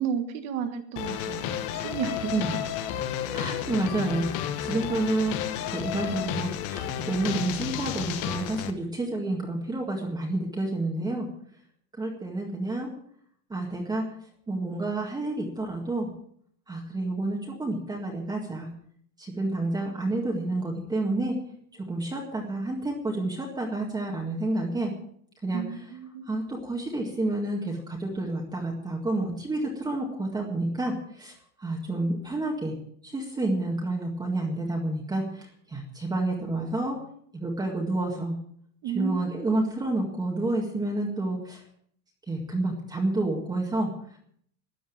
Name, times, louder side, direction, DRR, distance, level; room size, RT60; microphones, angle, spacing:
voice 1, 0.0-2.5 25.5-26.4 38.8-39.4, right 8 dB, 35° right, 8 dB, 1.6 m, -33 dB
sound 1, 1.0-8.7, left 10 dB, 40° left, 1.3 m, -32 dB
voice 2, 3.3-5.4 5.7-11.3 12.0-12.9 13.5-14.0 14.5-16.1 16.7-18.7 19.2-21.3 21.9-24.9 25.4-25.6 26.3-31.3 31.6-32.7 33.0-37.0 37.3-38.3 38.9-41.6 42.3-43.9, right 2 dB, 10° right, -1 dB, 1.9 m, -29 dB
13.5 x 10.0 x 8.6 m, 0.64 s
supercardioid pair, 175°, 46 cm